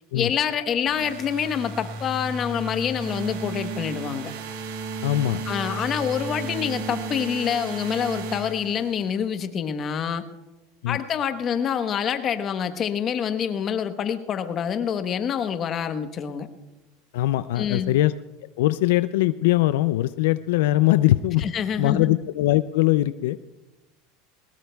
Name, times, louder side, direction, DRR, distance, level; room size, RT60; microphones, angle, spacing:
voice 1, 0.1-4.3 5.5-10.3 10.9-16.5 17.6-17.9 21.4-22.2, left 8 dB, 35° left, 9 dB, 1.1 m, -26 dB
sound 1, 0.9-9.2, right 4 dB, 70° right, 1.7 m, -34 dB
voice 2, 5.0-5.4 10.8-11.0 17.1-18.1 18.6-21.5 21.8-23.4, left 16 dB, 80° left, 13 dB, 0.4 m, -21 dB
21.0 x 19.0 x 2.3 m, 1.0 s
supercardioid pair, 125°, 0 cm